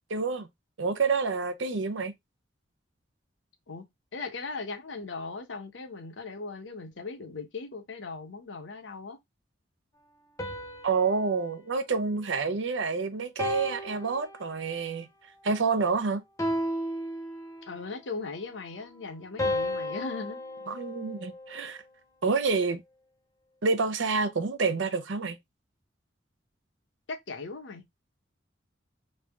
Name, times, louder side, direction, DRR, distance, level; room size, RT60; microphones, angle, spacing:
voice 1, 0.1-0.5 0.8-2.1 10.8-15.1 15.4-16.2 20.7-21.8 22.2-22.8 23.6-25.4, right 4 dB, 90° right, 0.7 m, -28 dB
voice 2, 3.7-9.2 17.7-20.4 27.1-27.8, left 4 dB, 85° left, 0.8 m, -38 dB
sound 1, 10.4-12.8 13.4-14.8 16.4-17.8 19.4-21.7, equal, 15° left, 0.7 m, -35 dB
3.3 x 2.6 x 3.4 m
head